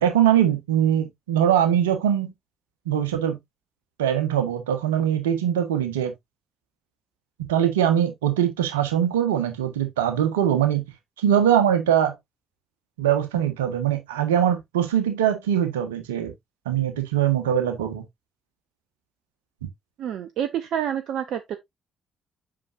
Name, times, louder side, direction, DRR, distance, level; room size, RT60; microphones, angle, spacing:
voice 1, 0.0-2.3 2.8-3.4 4.0-6.1 7.4-10.8 11.2-12.1 13.0-16.3 16.6-18.0, right 10 dB, 85° right, 1.4 m, -22 dB
voice 2, 20.0-21.6, right 9 dB, 65° right, 0.7 m, -28 dB
7.6 x 6.1 x 2.6 m
hypercardioid pair, 45°, 0 cm